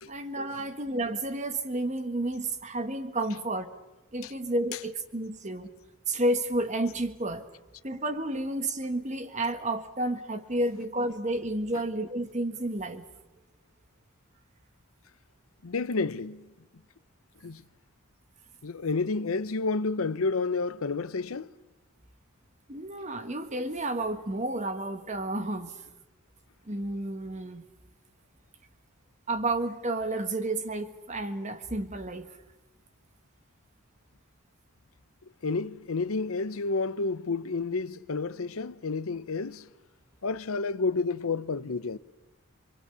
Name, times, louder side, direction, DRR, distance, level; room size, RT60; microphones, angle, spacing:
voice 1, 0.1-3.7 4.1-5.7 6.1-7.5 7.8-13.1 22.7-25.7 26.6-27.6 29.3-32.3, right 1 dB, 35° right, 1.5 m, -31 dB
voice 2, 15.6-16.5 17.4-17.6 18.6-21.5 35.4-39.7 40.2-42.0, left 3 dB, 75° left, 0.7 m, -30 dB
25.5 x 24.0 x 6.9 m
head